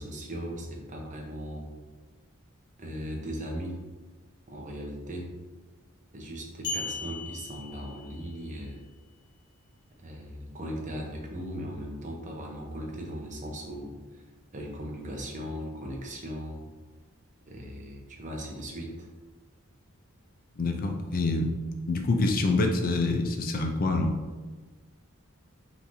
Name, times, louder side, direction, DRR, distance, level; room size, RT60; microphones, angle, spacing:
voice 1, 0.0-1.6 2.8-3.8 4.5-5.3 6.1-8.8 10.0-14.3 14.5-16.7 17.5-19.1, equal, 35° right, 0 dB, 0.8 m, -38 dB
sound 1, 6.6-8.5, left 3 dB, 60° left, 1.3 m, -37 dB
voice 2, 20.6-21.5 21.9-24.2, left 2 dB, 45° left, 4 dB, 0.5 m, -26 dB
5.5 x 3.2 x 2.7 m, 1.3 s
head